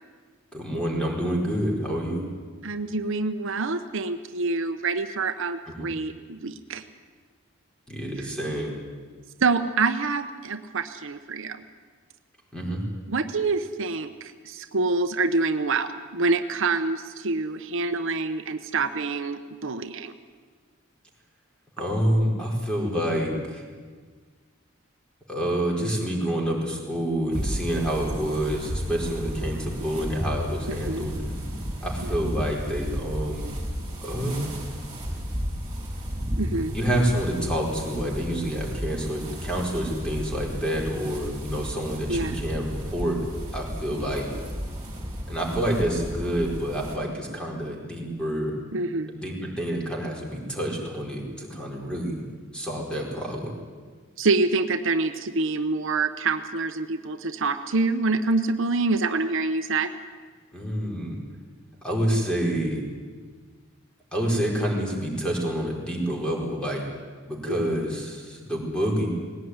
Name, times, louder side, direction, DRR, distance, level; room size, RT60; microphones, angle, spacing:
voice 1, 0.5-2.2 5.7-5.9 7.9-8.7 12.5-12.8 21.8-23.6 25.3-31.1 31.8-33.5 34.0-34.5 36.7-43.2 43.5-44.3 45.3-48.5 49.1-52.2 52.5-53.5 60.5-61.2 61.8-62.8 64.1-66.8 67.3-69.1, equal, 5° left, -1 dB, 4.7 m, -28 dB
voice 2, 2.6-6.8 8.2-8.3 9.4-11.6 13.1-20.1 30.9-31.0 32.0-32.1 36.4-36.7 42.1-42.3 48.7-49.1 54.2-59.9 67.5-67.7, right 3 dB, 65° right, 8 dB, 0.9 m, -26 dB
sound 1, 27.3-47.0, equal, 20° right, 5.4 m, -33 dB
20.0 x 17.0 x 9.6 m, 1.5 s
head